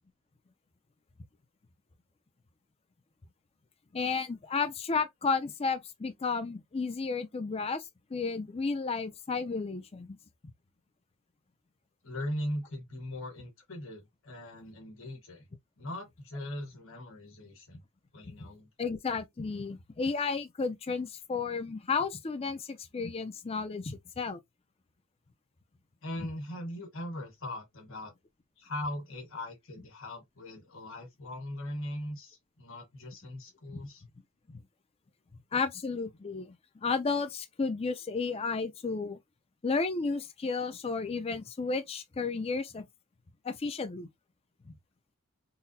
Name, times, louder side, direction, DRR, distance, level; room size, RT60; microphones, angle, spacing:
voice 1, 3.9-7.8 8.1-10.2 17.7-17.8 18.4-18.5 18.8-24.4 34.5-34.6 35.5-36.6 36.8-39.2 39.6-42.8 43.4-44.1 44.7-44.8, left 4 dB, 30° left, 0.4 m, -32 dB
voice 2, 12.0-15.4 15.8-17.8 18.1-18.7 26.0-28.1 28.6-34.0, left 1 dB, 65° left, 1.5 m, -40 dB
3.9 x 2.1 x 2.7 m
head